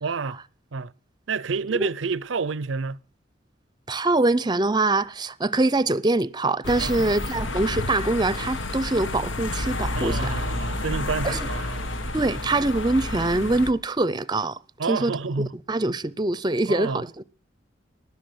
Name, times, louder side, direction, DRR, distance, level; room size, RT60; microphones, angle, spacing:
voice 1, 0.0-0.4 0.7-0.9 1.3-3.0 6.8-7.2 9.9-12.1 14.8-15.5 16.7-17.0, right 4 dB, 90° right, 0.6 m, -29 dB
voice 2, 3.9-10.3 11.2-11.4 12.1-14.6 14.9-15.1 15.7-17.2, right 2 dB, 25° right, 0.6 m, -24 dB
sound 1, 6.6-13.7, left 2 dB, 90° left, 1.3 m, -30 dB
13.0 x 10.5 x 7.8 m
head